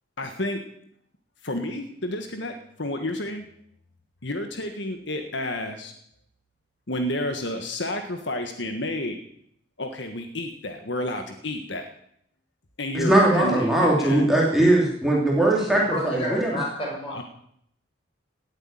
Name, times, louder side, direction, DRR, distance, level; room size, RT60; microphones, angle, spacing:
voice 1, 0.2-0.6 1.4-3.4 4.2-5.9 6.9-9.2 9.8-11.9 12.8-14.2 17.1-17.2, left 1 dB, 70° left, 5 dB, 1.6 m, -30 dB
voice 2, 12.9-16.5, right 1 dB, ahead, -4 dB, 3.0 m, -20 dB
voice 3, 15.6-17.2, equal, 30° left, -3 dB, 7.2 m, -30 dB
18.0 x 8.3 x 9.0 m, 0.70 s
head